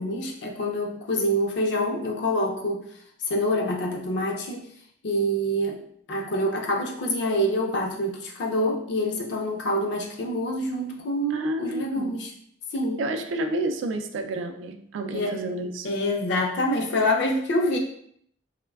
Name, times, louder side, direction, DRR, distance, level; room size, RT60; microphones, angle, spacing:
voice 1, 0.0-2.8 3.2-4.7 5.0-5.8 6.1-12.3 12.7-13.1 15.1-15.4 15.8-17.8, equal, 65° left, 1 dB, 0.5 m, -26 dB
voice 2, 11.3-12.2 13.0-15.9, right 1 dB, 90° right, 7 dB, 0.3 m, -30 dB
3.1 x 2.1 x 2.3 m, 0.66 s
head